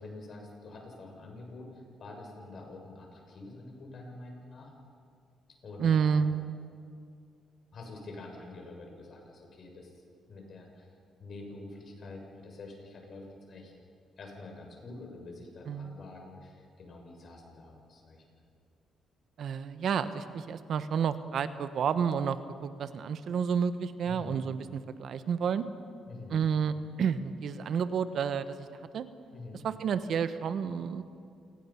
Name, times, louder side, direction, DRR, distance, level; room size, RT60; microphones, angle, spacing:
voice 1, 0.0-4.7 5.6-6.3 7.7-9.9 10.3-10.9 11.2-13.7 14.2-18.2 24.0-24.5 26.1-26.4 29.3-29.6, left 2 dB, 55° left, 1 dB, 6.6 m, -46 dB
voice 2, 5.8-6.7 15.7-16.0 19.4-25.6 26.3-29.0 29.6-31.0, right 7 dB, 65° right, 11 dB, 1.1 m, -30 dB
28.5 x 19.5 x 5.8 m, 2.4 s
cardioid pair, 90°, 0 cm